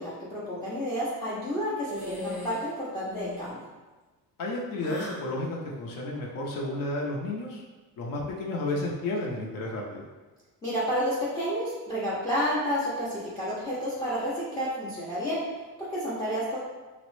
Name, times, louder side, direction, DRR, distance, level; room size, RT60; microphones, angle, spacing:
voice 1, 0.0-3.6 10.6-15.4 15.9-16.6, equal, 10° left, -9 dB, 0.4 m, -30 dB
sound 1, 1.9-2.7 3.0-3.6 4.8-5.3, left 1 dB, 5° right, 0.8 m, -38 dB
voice 2, 4.4-7.7 8.0-10.1, left 2 dB, 65° left, -2 dB, 0.6 m, -32 dB
3.4 x 2.0 x 3.0 m, 1.2 s
cardioid pair, 180°, 35 cm